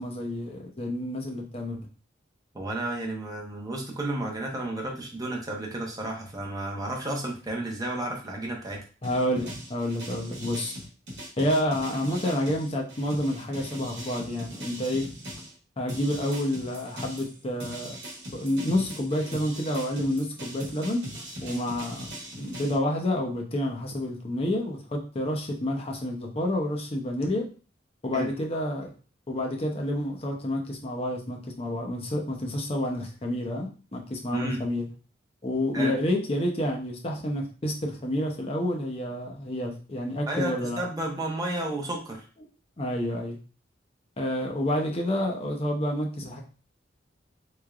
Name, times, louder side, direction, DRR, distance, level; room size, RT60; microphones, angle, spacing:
voice 1, 0.0-1.9 9.0-10.7 11.4-15.1 15.8-18.0 18.3-21.0 21.4-22.1 22.4-27.4 28.0-28.9 29.3-34.9 35.4-40.8 42.8-43.4 44.2-46.4, left 1 dB, 30° left, 1 dB, 0.7 m, -29 dB
voice 2, 2.5-8.8 28.1-28.3 34.3-34.6 35.7-36.0 40.3-42.3, right 1 dB, 20° right, -1 dB, 0.8 m, -32 dB
sound 1, 9.0-15.5 15.9-22.8, equal, 65° right, 1.1 m, -40 dB
3.5 x 3.2 x 2.4 m, 0.38 s
head